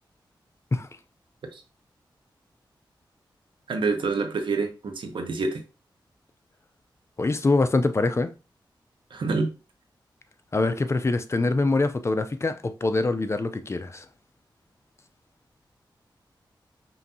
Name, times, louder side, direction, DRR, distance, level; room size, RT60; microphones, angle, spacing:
voice 1, 3.7-5.6 9.1-9.5, right 4 dB, 80° right, 0.9 m, -27 dB
voice 2, 7.2-8.3 10.5-14.0, left 3 dB, 35° left, 0.5 m, -24 dB
5.6 x 2.7 x 2.7 m
wide cardioid pair, 75°, 8 cm